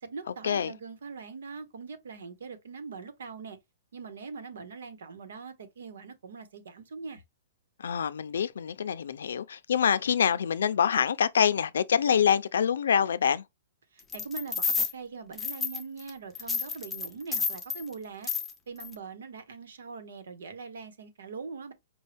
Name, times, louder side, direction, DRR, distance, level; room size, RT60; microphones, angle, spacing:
voice 1, 0.0-3.6 3.9-7.2 13.9-18.3 18.7-21.7, right 4 dB, 90° right, 1.1 m, -42 dB
voice 2, 7.8-13.4, left 8 dB, 85° left, 0.5 m, -25 dB
sound 1, 14.1-14.9 15.4-16.1 16.3-17.8 18.2-18.5 18.8-18.9, left 5 dB, 5° left, 0.4 m, -30 dB
5.4 x 2.3 x 3.4 m
hypercardioid pair, 175°, 0 cm